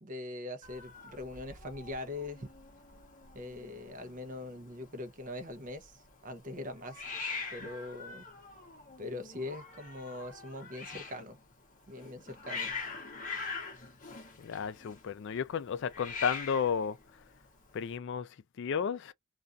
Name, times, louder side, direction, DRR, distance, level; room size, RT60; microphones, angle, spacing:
voice 1, 0.0-2.5 3.3-7.0 7.5-8.2 9.0-11.4 11.9-12.7, left 2 dB, 40° right, 0.6 m, -42 dB
Hiss, 0.6-18.0, left 4 dB, 35° left, 0.8 m, -44 dB
voice 2, 14.4-17.0 17.7-19.1, left 7 dB, 55° left, 0.3 m, -33 dB
2.4 x 2.3 x 2.4 m
head